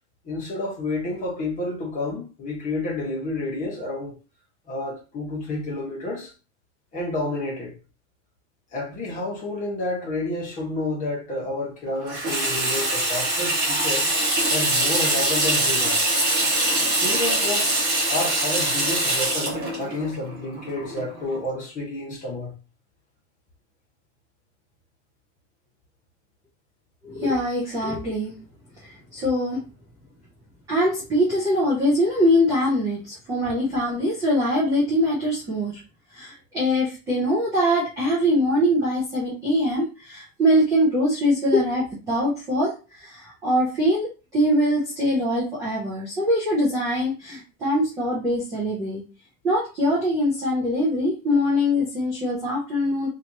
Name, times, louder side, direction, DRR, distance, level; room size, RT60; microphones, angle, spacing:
voice 1, 0.2-4.2 4.7-6.3 6.9-7.7 8.7-14.1 14.5-16.1 16.8-17.7 18.1-22.5 33.4-33.5, left 2 dB, 20° left, 1.3 m, -30 dB
Water tap faucet / Sink (filling or washing), 12.1-21.4, right 1 dB, 25° right, 1.4 m, -23 dB
voice 2, 27.0-28.3 28.8-29.6 30.7-35.8 36.1-49.0 49.4-53.1, equal, 10° right, 0.3 m, -23 dB
4.4 x 2.9 x 2.7 m
supercardioid pair, 175°, 41 cm